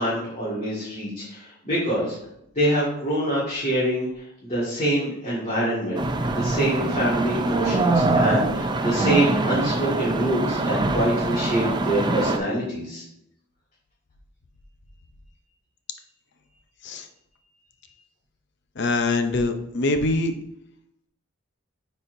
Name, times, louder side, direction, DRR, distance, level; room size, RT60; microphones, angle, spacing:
voice 1, 0.0-2.2 2.6-6.0 6.3-13.0, right 1 dB, 35° left, -9 dB, 1.8 m, -25 dB
sound 1, 5.9-12.4, right 2 dB, 20° right, 0.4 m, -24 dB
voice 2, 18.8-20.3, left 2 dB, 60° left, 7 dB, 0.6 m, -23 dB
8.9 x 4.3 x 2.6 m, 0.78 s
head